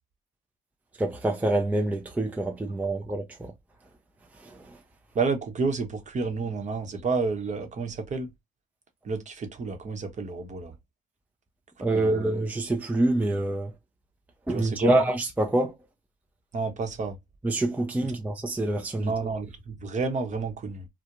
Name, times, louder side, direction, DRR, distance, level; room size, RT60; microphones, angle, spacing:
voice 1, 1.0-3.5 11.8-13.7 14.5-15.7 17.4-19.1, right 1 dB, 10° right, 0.5 m, -26 dB
voice 2, 5.1-8.3 9.0-10.8 11.9-12.3 14.5-15.0 16.5-17.2 19.0-20.9, right 4 dB, 35° right, 0.9 m, -30 dB
2.4 x 2.1 x 2.9 m
supercardioid pair, 80°, 20 cm